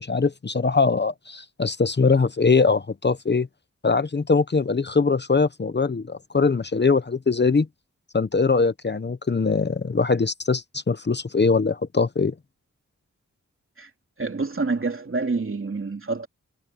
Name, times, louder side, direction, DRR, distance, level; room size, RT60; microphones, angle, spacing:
voice 1, 0.0-3.5 3.8-7.7 8.1-12.3, left 4 dB, 35° left, 0.9 m, -22 dB
voice 2, 14.2-16.3, right 3 dB, 45° right, 3.0 m, -27 dB
wide cardioid pair, 65°, 29 cm